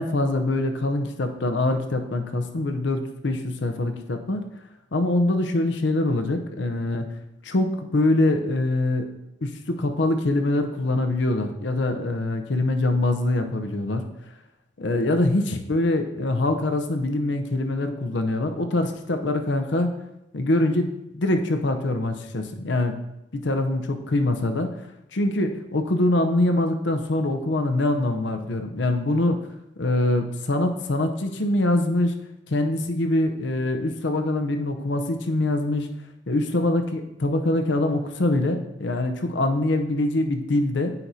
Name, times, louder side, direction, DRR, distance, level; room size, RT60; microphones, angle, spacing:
voice 1, 0.0-4.4 4.9-7.1 7.4-9.1 9.4-14.0 14.8-19.9 20.3-22.9 23.3-24.7 25.1-29.4 29.8-32.1 32.5-35.9 36.3-40.9, left 2 dB, 65° left, 6 dB, 0.7 m, -24 dB
9.7 x 4.6 x 2.8 m, 0.87 s
head